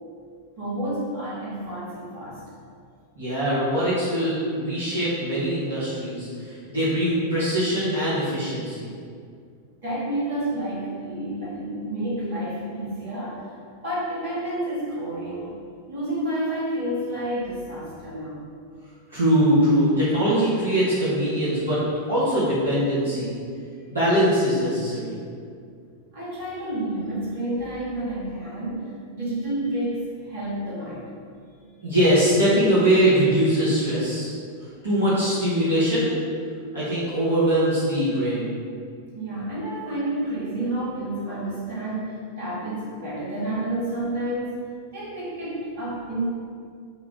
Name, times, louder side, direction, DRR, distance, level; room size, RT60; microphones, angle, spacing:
voice 1, 0.6-2.4 9.8-13.5 13.8-15.6 15.9-18.4 26.1-31.1 39.1-46.3, right 1 dB, 60° right, -8 dB, 1.4 m, -30 dB
voice 2, 3.2-8.9 19.1-21.8 22.1-23.4 23.9-25.2 31.8-34.3 34.8-36.1 36.7-38.5, equal, 80° right, -12 dB, 1.1 m, -22 dB
4.4 x 2.3 x 3.6 m, 2.2 s
figure-of-eight pair, 90°, 0 cm